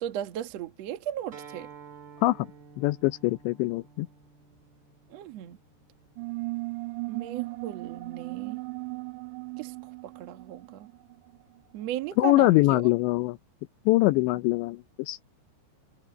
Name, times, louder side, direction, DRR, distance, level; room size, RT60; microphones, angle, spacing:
voice 1, 0.0-1.7 5.1-5.6 7.1-8.6 9.6-9.7 10.0-10.9 11.7-12.8, right 11 dB, 65° right, 1.6 m, -36 dB
Acoustic guitar, 1.3-6.5, right 6 dB, 35° right, 1.9 m, -51 dB
voice 2, 2.8-4.1 12.2-13.4 13.9-15.2, left 19 dB, 85° left, 2.9 m, -23 dB
sound 1, 6.2-11.4, right 24 dB, 85° right, 2.8 m, -37 dB
omnidirectional pair, 5.2 m